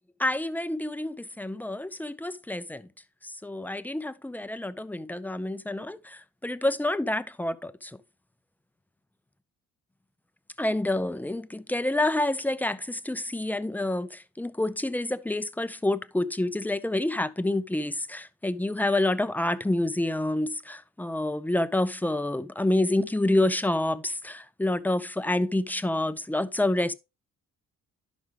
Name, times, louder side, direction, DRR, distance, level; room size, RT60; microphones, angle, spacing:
voice 1, 0.2-2.9 3.2-8.0 10.6-26.9, left 1 dB, 5° left, 0.6 m, -28 dB
11.0 x 6.1 x 3.4 m
cardioid pair, 90°, 30 cm